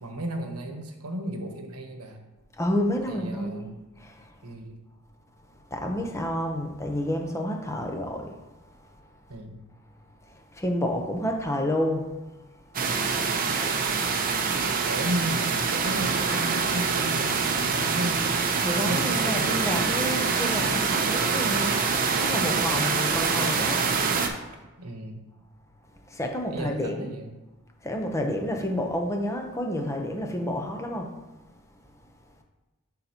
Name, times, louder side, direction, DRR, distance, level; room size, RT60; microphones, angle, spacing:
voice 1, 0.0-2.2 3.1-3.7 4.4-4.8 9.3-9.6 14.9-18.3 18.8-19.9 24.8-25.2 26.5-27.3, right 1 dB, 90° right, 5 dB, 1.0 m, -34 dB
voice 2, 2.6-3.7 4.0-4.3 5.7-8.4 10.3-12.1 18.6-23.9 26.1-27.1 27.8-31.2, equal, 15° left, 3 dB, 0.7 m, -29 dB
sound 1, 12.7-24.3, right 5 dB, 40° right, 0.7 m, -25 dB
11.0 x 4.0 x 2.9 m, 1.1 s
head